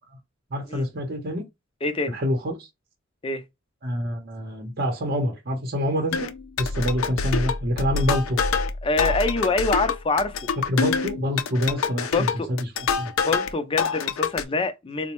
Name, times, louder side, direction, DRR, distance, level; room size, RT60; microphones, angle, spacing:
voice 1, 0.5-1.4 2.1-2.7 3.8-6.3 6.6-8.4 10.7-12.7 13.0-13.1, equal, 50° right, 0.8 m, -26 dB
voice 2, 1.8-2.2 3.2-3.4 8.8-10.4 12.1-12.5 13.2-15.1, left 3 dB, 25° left, 0.5 m, -25 dB
sound 1, 6.1-13.5 13.8-14.4, left 5 dB, 85° left, 0.4 m, -26 dB
4.0 x 2.1 x 3.0 m
head